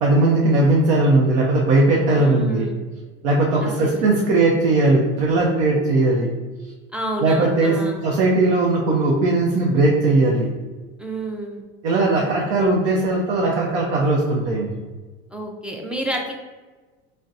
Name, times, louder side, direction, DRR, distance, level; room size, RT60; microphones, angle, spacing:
voice 1, 0.0-2.7 3.2-6.3 7.2-7.8 8.0-10.5 11.8-14.7, right 2 dB, 85° right, -3 dB, 0.7 m, -18 dB
voice 2, 2.1-2.9 3.6-4.2 6.9-8.1 11.0-11.6 15.3-16.3, right 1 dB, 5° right, 0 dB, 0.3 m, -29 dB
4.0 x 2.1 x 2.4 m, 1.3 s
supercardioid pair, 115°, 30 cm